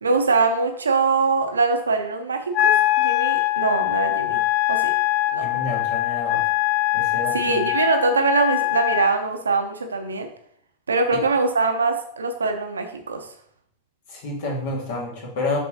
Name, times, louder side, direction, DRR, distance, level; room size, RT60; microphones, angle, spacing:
voice 1, 0.0-4.4 4.7-4.9 5.3-5.5 7.3-10.3 10.9-13.3, right 4 dB, 75° right, 6 dB, 0.8 m, -23 dB
Wind instrument woodwind instrument, 2.5-9.1, left 15 dB, 40° left, 0.3 m, -22 dB
voice 2, 5.4-6.4 6.9-7.6 11.1-11.2 14.1-15.6, left 2 dB, 55° left, -2 dB, 2.1 m, -29 dB
6.7 x 5.2 x 2.9 m, 0.65 s
figure-of-eight pair, 90°, 0 cm